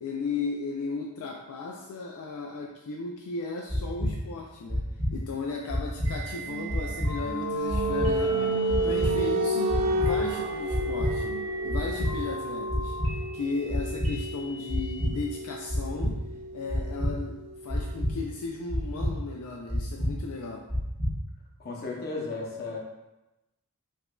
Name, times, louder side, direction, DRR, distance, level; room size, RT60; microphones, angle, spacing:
voice 1, 0.0-16.2 16.5-17.4 17.6-20.7, left 4 dB, 70° left, 0 dB, 0.3 m, -35 dB
sound 1, 3.7-4.1 4.7-5.1 5.7-6.1 6.7-7.1 7.7-8.1 8.7-9.1 9.7-10.1 10.7-11.1 11.7-12.1 12.7-13.1 13.7-14.1 14.7-15.1 15.7-16.1 16.7-17.1 17.7-18.1 18.7-19.1 19.7-20.1 20.7-21.1, equal, 45° right, 1.2 m, -27 dB
sound 2, 6.0-15.1, left 1 dB, 70° right, 1.1 m, -41 dB
sound 3, 6.4-18.0, right 1 dB, 85° right, 0.4 m, -31 dB
voice 2, 21.6-22.8, left 3 dB, 45° left, -2 dB, 0.7 m, -34 dB
4.8 x 2.4 x 2.2 m, 0.99 s
head